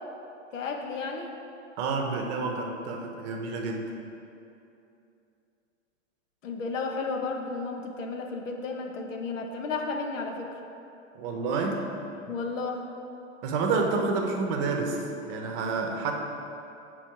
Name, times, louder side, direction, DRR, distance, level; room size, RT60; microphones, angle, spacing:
voice 1, 0.5-1.3 6.4-10.6 12.3-12.9, left 4 dB, 85° left, 3 dB, 0.9 m, -33 dB
voice 2, 1.8-3.9 11.1-11.8 12.3-12.4 13.4-16.1, right 4 dB, 40° right, 2 dB, 0.8 m, -29 dB
5.9 x 4.2 x 4.6 m, 2.7 s
hypercardioid pair, 125°, 37 cm